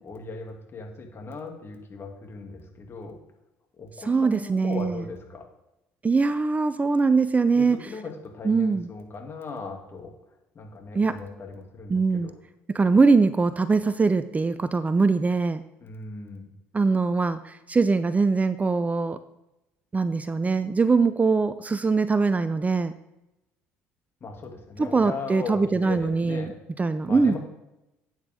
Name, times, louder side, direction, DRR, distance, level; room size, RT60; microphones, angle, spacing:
voice 1, 0.0-3.2 3.8-5.4 7.5-10.1 10.5-12.3 15.8-16.5 24.2-26.5 27.0-27.4, left 4 dB, 40° left, 2 dB, 2.6 m, -38 dB
voice 2, 4.0-5.0 6.0-7.8 8.4-8.9 10.9-11.2 11.9-12.3 12.7-15.6 16.7-19.2 19.9-22.9 24.8-26.5 26.8-27.4, right 4 dB, 25° right, 13 dB, 0.6 m, -22 dB
11.5 x 8.9 x 3.7 m, 0.91 s
hypercardioid pair, 60°, 6 cm